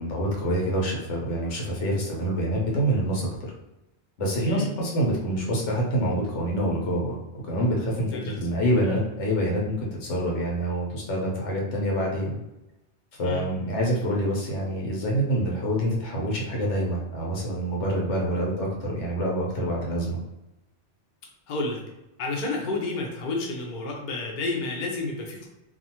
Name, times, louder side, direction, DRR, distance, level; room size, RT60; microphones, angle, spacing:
voice 1, 0.0-3.5 4.2-12.4 13.2-20.2, right 1 dB, 85° left, -2 dB, 1.1 m, -26 dB
voice 2, 21.5-21.8 22.2-25.5, left 3 dB, 55° left, 0 dB, 0.6 m, -30 dB
2.4 x 2.4 x 2.8 m, 0.94 s
omnidirectional pair, 1.2 m